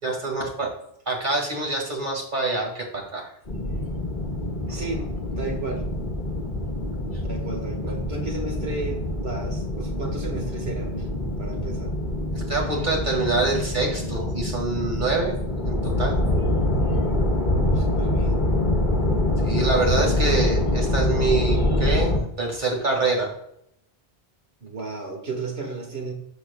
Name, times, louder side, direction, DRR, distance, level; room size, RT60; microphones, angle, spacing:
voice 1, 0.0-0.7 1.1-3.3 4.7-4.8 12.3-16.2 19.4-23.3, right 3 dB, 45° right, 0 dB, 2.2 m, -26 dB
sound 1, 3.5-22.2, left 1 dB, 45° left, 1.6 m, -25 dB
voice 2, 4.7-5.0 5.4-5.9 7.2-11.1 11.4-12.0 17.3-18.5 24.6-26.1, right 3 dB, 70° right, 3 dB, 1.9 m, -33 dB
12.0 x 6.2 x 2.3 m, 0.75 s
omnidirectional pair, 1.1 m